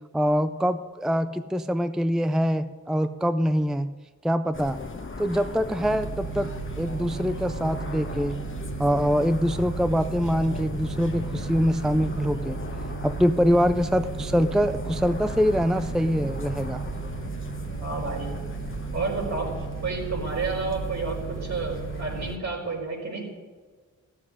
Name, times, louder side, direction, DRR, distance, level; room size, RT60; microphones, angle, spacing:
voice 1, 0.1-3.9 4.2-4.8 5.2-6.5 6.8-8.4 8.8-12.6 13.0-16.8, equal, ahead, 11 dB, 0.4 m, -24 dB
sound 1, 4.5-22.4, left 3 dB, 40° left, 1.3 m, -37 dB
sound 2, 5.8-22.3, right 8 dB, 90° right, 1.2 m, -36 dB
voice 2, 17.8-18.3 18.9-19.5 19.8-23.2, right 4 dB, 60° right, -1 dB, 4.5 m, -30 dB
15.0 x 7.4 x 9.8 m, 1.5 s
wide cardioid pair, 95°, 30 cm